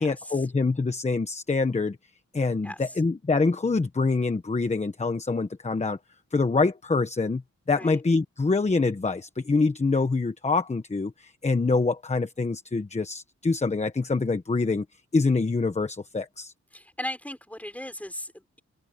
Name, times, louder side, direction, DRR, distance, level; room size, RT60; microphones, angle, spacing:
voice 1, 0.0-2.0 2.3-6.0 6.3-7.4 7.7-14.8 15.1-16.5, left 3 dB, 25° left, 1.2 m, -25 dB
voice 2, 16.7-18.6, left 1 dB, 5° left, 6.6 m, -37 dB
open air
wide cardioid pair, 125°, 29 cm